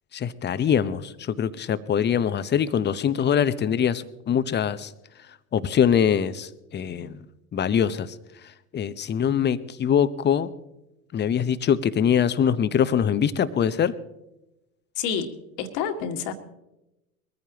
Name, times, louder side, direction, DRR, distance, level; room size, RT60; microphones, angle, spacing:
voice 1, 0.1-4.9 5.5-7.2 7.5-8.1 8.7-10.5 11.1-13.9, left 8 dB, 25° left, 14 dB, 0.9 m, -23 dB
voice 2, 15.0-15.3 15.6-16.3, left 7 dB, 55° left, 6 dB, 1.9 m, -28 dB
22.0 x 14.5 x 3.0 m, 0.93 s
hypercardioid pair, 75°, 43 cm